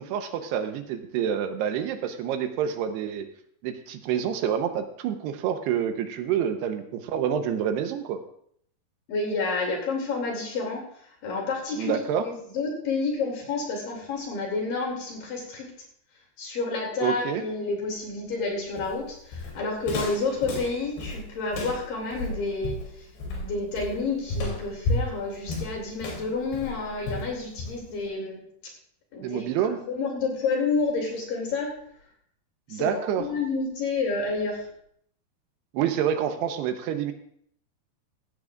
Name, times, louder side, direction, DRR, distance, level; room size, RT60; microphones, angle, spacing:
voice 1, 0.0-3.3 3.6-8.2 11.8-12.2 17.0-17.4 29.2-29.8 32.7-33.3 35.7-37.1, right 8 dB, 80° right, 7 dB, 2.9 m, -27 dB
voice 2, 9.1-10.8 11.2-11.9 12.2-15.7 16.4-23.1 23.4-28.4 29.1-31.7 32.7-34.7, left 3 dB, 60° left, -1 dB, 3.9 m, -29 dB
Walk footsteps, 18.8-28.0, left 2 dB, 80° left, 5.1 m, -32 dB
16.0 x 15.0 x 2.4 m, 0.66 s
omnidirectional pair, 4.8 m